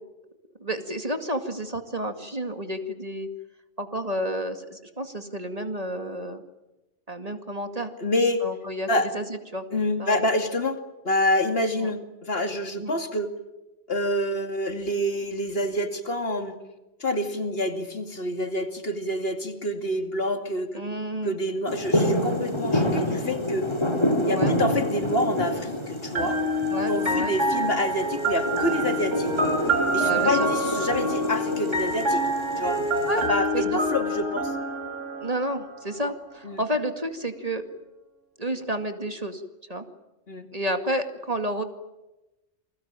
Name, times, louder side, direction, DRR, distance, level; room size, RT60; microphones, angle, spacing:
voice 1, 0.6-3.3 3.8-6.4 7.1-7.9 8.4-8.9 9.1-9.3 9.5-9.6 10.0-10.2 11.8-11.9 12.8-12.9 20.7-21.4 24.3-24.6 26.7-27.3 30.0-30.5 33.1-33.3 33.5-33.8 35.2-37.6 38.4-39.4 39.7-39.9 40.5-41.6, right 1 dB, 30° right, 7 dB, 2.3 m, -30 dB
voice 2, 8.0-8.4 8.9-9.1 9.7-10.8 11.0-13.3 13.9-16.6 17.0-20.8 21.2-23.7 24.3-26.4 26.9-29.3 29.9-32.3 32.6-32.8 33.2-34.5 36.4-36.6 40.3-40.5, left 1 dB, 55° left, 7 dB, 2.8 m, -27 dB
sound 1, 21.7-33.3, left 1 dB, 20° left, 3.5 m, -28 dB
sound 2, 26.1-35.9, right 1 dB, 80° right, 5.0 m, -27 dB
29.0 x 21.0 x 9.0 m, 1.0 s
omnidirectional pair, 1.2 m